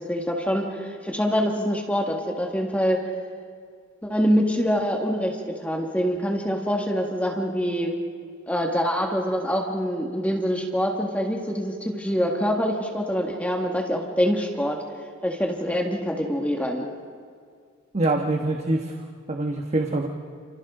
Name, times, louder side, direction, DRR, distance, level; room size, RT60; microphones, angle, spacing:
voice 1, 0.1-3.0 4.0-5.4 5.6-7.9 8.5-14.8 15.2-16.9, equal, 5° left, 0 dB, 1.9 m, -25 dB
voice 2, 17.9-18.9 19.3-20.1, right 2 dB, 30° right, 3 dB, 1.3 m, -24 dB
29.5 x 28.5 x 3.9 m, 2.2 s
head